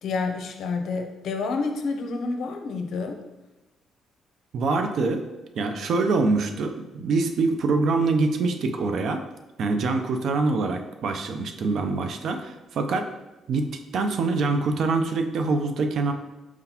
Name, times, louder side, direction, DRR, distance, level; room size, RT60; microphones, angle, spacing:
voice 1, 0.0-3.2, left 4 dB, 70° left, 5 dB, 0.6 m, -29 dB
voice 2, 4.5-5.3 5.6-9.2 9.6-13.1 13.5-16.1, right 3 dB, 65° right, 6 dB, 0.5 m, -25 dB
4.6 x 3.9 x 2.8 m, 1.0 s
cardioid pair, 90°, 0 cm